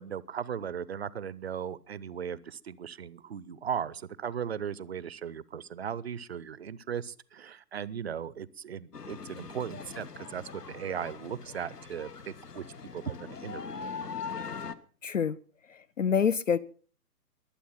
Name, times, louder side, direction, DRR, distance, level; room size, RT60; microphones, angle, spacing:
voice 1, 0.0-12.6 12.9-13.9, right 8 dB, 40° right, 21 dB, 0.7 m, -37 dB
sound 1, 8.9-14.7, left 5 dB, 75° left, 1.2 m, -41 dB
voice 2, 15.0-15.4 15.7-16.6, left 7 dB, 55° left, 19 dB, 0.6 m, -27 dB
22.0 x 8.3 x 5.8 m, 0.43 s
figure-of-eight pair, 130°, 47 cm